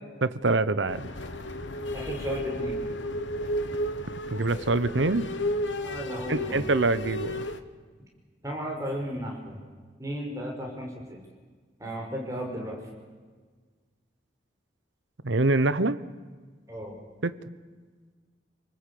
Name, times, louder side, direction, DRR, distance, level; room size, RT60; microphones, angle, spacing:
voice 1, 0.2-1.1 4.3-5.3 6.3-7.4 15.2-16.0 17.2-17.4, right 2 dB, 85° right, 14 dB, 1.1 m, -25 dB
Squeeky Truck Brake, 0.9-7.6, left 1 dB, 85° left, 1.5 m, -33 dB
voice 2, 1.9-2.8 5.8-6.7 8.4-9.6 10.0-11.2 11.8-12.8 16.7-17.0, equal, 15° right, -1 dB, 5.7 m, -34 dB
29.0 x 19.5 x 8.7 m, 1.5 s
head